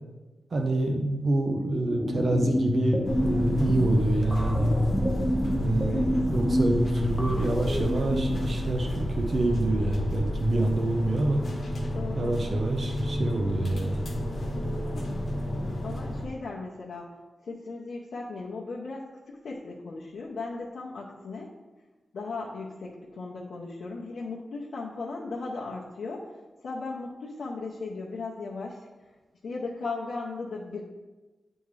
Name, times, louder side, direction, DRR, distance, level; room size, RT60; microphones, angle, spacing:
voice 1, 0.5-4.8 5.6-11.4 12.1-14.0, right 2 dB, 45° right, 3 dB, 0.5 m, -27 dB
sound 1, 1.6-8.7, left 1 dB, 10° left, 0.7 m, -27 dB
sound 2, 3.0-16.3, equal, 50° left, 1.1 m, -31 dB
voice 2, 11.9-12.4 14.6-17.2 17.4-21.5 22.1-26.3 26.6-28.9 29.4-30.8, left 3 dB, 80° left, -5 dB, 0.7 m, -37 dB
9.3 x 3.6 x 3.2 m, 1.2 s
wide cardioid pair, 145°, 0 cm